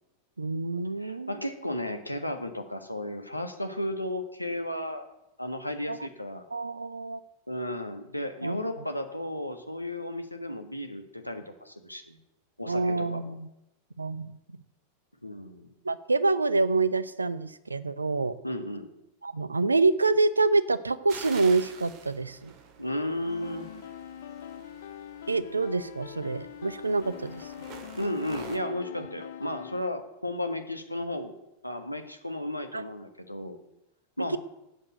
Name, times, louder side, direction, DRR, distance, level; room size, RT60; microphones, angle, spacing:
voice 1, 0.4-1.3 5.9-6.0 6.5-7.2 8.4-8.6 12.7-13.5 14.0-14.6 15.8-18.4 19.2-22.5 25.3-27.5 32.7-32.8 34.3-34.4, right 3 dB, 80° right, 16 dB, 0.7 m, -27 dB
voice 2, 1.0-5.0 5.4-6.4 7.5-12.2 12.6-13.3 15.2-15.7 18.4-18.9 22.8-23.7 28.0-31.3 31.6-33.6 34.2-34.4, left 1 dB, 90° left, 7 dB, 1.5 m, -34 dB
sound 1, 21.1-28.6, right 6 dB, 40° right, 2.0 m, -48 dB
sound 2, 23.3-29.9, left 10 dB, 60° left, 0.5 m, -43 dB
12.0 x 8.4 x 9.2 m, 0.88 s
figure-of-eight pair, 90°, 0 cm